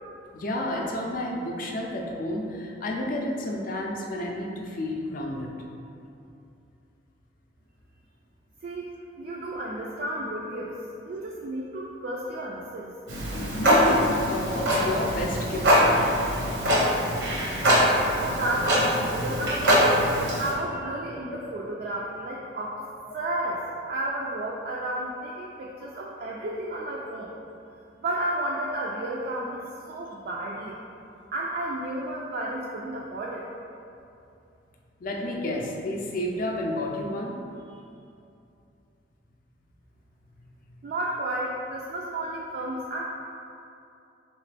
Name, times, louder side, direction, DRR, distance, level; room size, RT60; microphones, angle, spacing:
voice 1, 0.3-5.5 13.5-16.2 35.0-37.4, left 1 dB, 50° left, 0 dB, 0.4 m, -30 dB
voice 2, 8.6-10.7 11.0-12.9 18.2-22.8 23.1-23.6 23.9-27.3 28.0-29.6 29.9-30.8 31.3-33.5 40.8-43.0, right 1 dB, 55° right, -4 dB, 0.3 m, -32 dB
Clock, 13.1-20.5, equal, 80° right, 0.8 m, -23 dB
3.2 x 3.0 x 3.3 m, 2.6 s
head